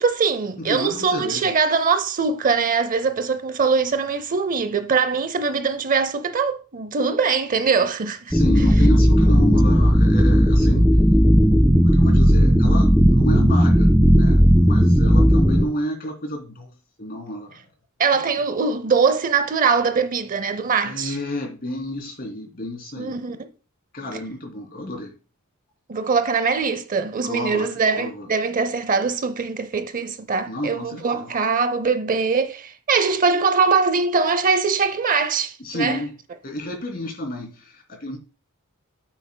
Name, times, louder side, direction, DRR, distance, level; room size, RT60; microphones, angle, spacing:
voice 1, 0.0-8.3 18.0-21.2 23.0-23.5 24.1-24.2 25.9-36.0, right 5 dB, 40° right, 0.6 m, -22 dB
voice 2, 0.7-1.6 8.3-10.9 11.8-16.7 17.0-17.6 20.8-23.1 23.9-25.2 27.2-27.7 28.0-28.3 30.5-31.3 35.6-36.1 36.4-38.2, left 1 dB, 45° left, 3.0 m, -30 dB
sound 1, 8.3-15.6, equal, 5° right, 1.3 m, -15 dB
9.3 x 8.3 x 2.2 m
head